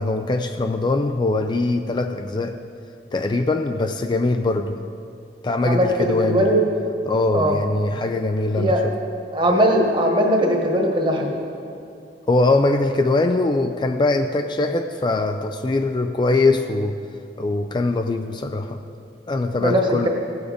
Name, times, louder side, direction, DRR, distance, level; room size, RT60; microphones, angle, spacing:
voice 1, 0.0-2.6 3.1-4.8 5.4-6.5 7.1-8.7 12.3-17.0 17.4-18.8 19.3-20.1, left 2 dB, 25° left, 7 dB, 0.3 m, -22 dB
voice 2, 5.6-6.6 7.3-7.5 8.6-8.8 9.3-11.4 19.6-20.1, equal, 25° right, 1 dB, 1.3 m, -19 dB
16.5 x 7.1 x 5.1 m, 2.6 s
head